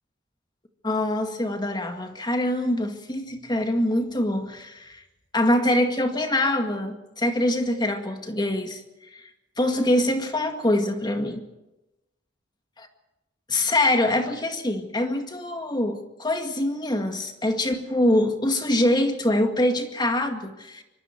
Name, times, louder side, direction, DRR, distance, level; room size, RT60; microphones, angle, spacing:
voice 1, 0.8-5.0 5.3-8.8 9.6-11.4 13.5-20.8, left 1 dB, 25° left, 5 dB, 2.0 m, -24 dB
25.0 x 23.5 x 4.6 m, 0.98 s
head